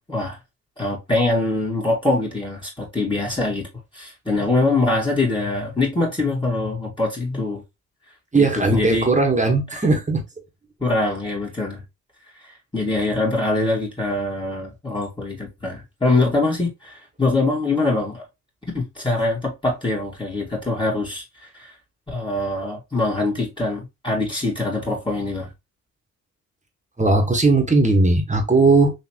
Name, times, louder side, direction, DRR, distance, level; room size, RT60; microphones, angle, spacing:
voice 1, 0.8-3.7 3.9-7.6 8.3-9.1 9.7-9.9 10.8-11.8 12.4-18.2 18.7-21.7 22.1-25.5, left 2 dB, 15° left, 2.1 m, -23 dB
voice 2, 8.3-10.2 27.0-28.9, right 3 dB, 20° right, 1.6 m, -18 dB
4.1 x 2.9 x 3.0 m
supercardioid pair, 55°, 35 cm